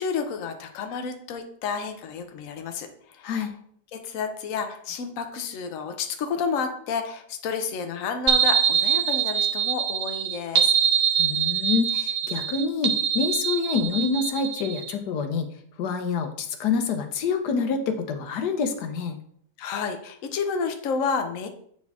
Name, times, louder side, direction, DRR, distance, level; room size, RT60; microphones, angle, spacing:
voice 1, 0.0-2.9 3.2-3.3 3.9-10.7 19.6-21.5, left 5 dB, 60° left, 5 dB, 1.1 m, -30 dB
sound 1, 8.3-14.9, right 8 dB, 70° right, 0.5 m, -24 dB
voice 2, 11.2-15.5 15.8-19.2, left 5 dB, 90° left, 7 dB, 1.4 m, -27 dB
8.0 x 4.2 x 3.5 m, 0.64 s
omnidirectional pair, 1.7 m